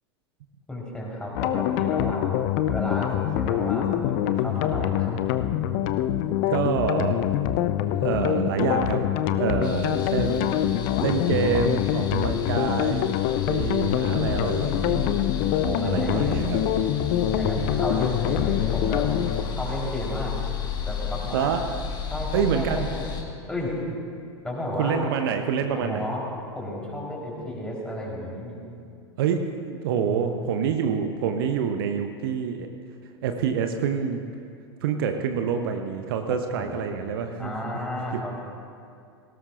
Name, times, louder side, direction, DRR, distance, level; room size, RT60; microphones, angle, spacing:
voice 1, 0.7-2.3 2.7-5.1 15.6-16.4 17.3-19.1 19.4-20.3 20.8-21.5 22.1-23.1 23.5-23.7 24.4-25.0 25.8-26.3 26.5-28.6 30.2-30.5 36.6-38.4, left 1 dB, 5° left, -4 dB, 3.9 m, -32 dB
sound 1, 1.4-19.4, left 11 dB, 45° left, 0.6 m, -25 dB
voice 2, 6.5-7.2 8.0-9.0 9.4-10.6 11.0-13.1 13.5-15.2 15.8-16.6 21.3-21.6 22.3-22.9 24.8-26.1 29.2-32.7 33.2-34.2 34.8-37.5 38.1-38.4, right 7 dB, 55° right, 6 dB, 0.8 m, -27 dB
sound 2, 9.6-23.2, left 6 dB, 30° left, 1.6 m, -33 dB
18.5 x 17.0 x 2.5 m, 2.4 s
figure-of-eight pair, 90°, 14 cm